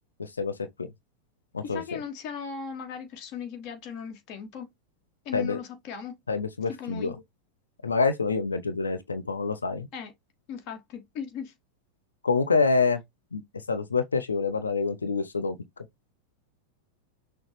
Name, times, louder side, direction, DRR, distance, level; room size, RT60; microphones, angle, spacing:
voice 1, 0.2-0.5 0.8-0.9 1.5-1.8 5.3-5.6 6.3-7.1 7.8-9.9 12.2-13.0 13.3-13.4 13.7-15.6, left 4 dB, 75° left, 0.7 m, -26 dB
voice 2, 1.6-4.7 5.2-6.2 6.8-7.1 9.9-10.1 10.5-11.5, left 7 dB, 40° left, 1.2 m, -37 dB
6.3 x 2.2 x 3.2 m
figure-of-eight pair, 90°, 0 cm